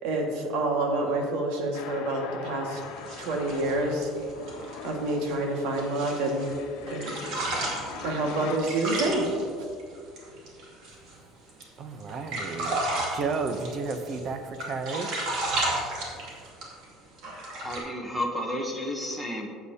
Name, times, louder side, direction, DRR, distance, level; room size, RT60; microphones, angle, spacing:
voice 1, 0.0-2.8 3.2-4.1 4.8-6.5 6.9-7.1 8.0-9.3, right 2 dB, 80° right, 1 dB, 1.8 m, -28 dB
sound 1, 1.7-8.6, left 6 dB, 75° left, 1.0 m, -42 dB
sound 2, 2.8-6.6 6.9-11.1 11.5-11.6 12.0-14.3 14.5-16.8 17.2-17.8, right 2 dB, 55° right, 2.4 m, -33 dB
voice 2, 11.8-12.7 13.1-15.1, right 4 dB, 35° right, 8 dB, 0.7 m, -32 dB
voice 3, 17.5-19.5, left 1 dB, 5° right, 1 dB, 0.8 m, -32 dB
14.0 x 8.1 x 2.8 m, 2.3 s
cardioid pair, 170°, 0 cm